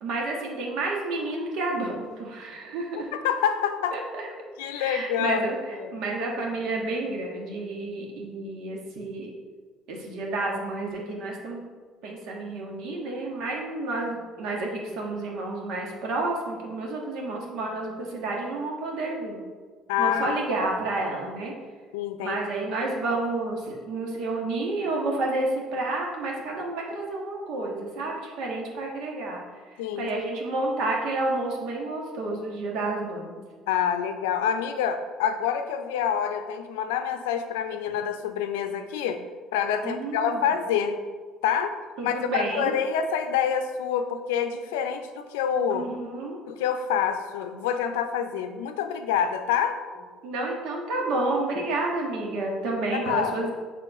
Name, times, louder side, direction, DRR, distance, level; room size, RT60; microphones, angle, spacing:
voice 1, 0.0-3.1 3.9-4.3 4.7-9.3 9.9-11.6 12.0-19.5 20.0-21.5 22.2-33.4 39.8-40.4 42.0-42.8 45.7-46.4 50.2-53.5, right 2 dB, 70° right, -1 dB, 1.5 m, -30 dB
voice 2, 3.1-4.0 4.6-5.4 5.7-5.9 19.9-20.4 21.9-22.4 29.8-30.1 33.7-39.2 39.5-41.0 41.4-45.9 46.5-49.8 52.9-53.3, left 8 dB, 90° left, 8 dB, 0.5 m, -27 dB
6.8 x 3.7 x 4.8 m, 1.5 s
supercardioid pair, 75°, 0 cm